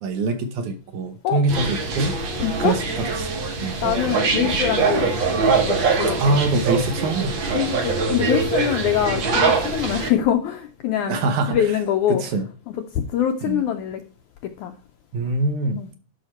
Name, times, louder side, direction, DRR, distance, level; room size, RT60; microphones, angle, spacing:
voice 1, 0.0-2.1 2.6-2.8 3.2-3.3 3.6-3.9 6.2-7.4 11.1-11.6 12.1-12.5 13.4-13.6 15.1-15.8, right 3 dB, 70° right, 2.1 m, -23 dB
sound 1, 1.5-10.1, right 4 dB, 90° right, 1.0 m, -23 dB
voice 2, 2.4-2.8 3.8-6.4 7.5-12.2 12.7-14.0 14.4-14.8 15.8-15.9, left 10 dB, 80° left, 1.7 m, -24 dB
11.5 x 5.7 x 4.3 m
omnidirectional pair, 4.1 m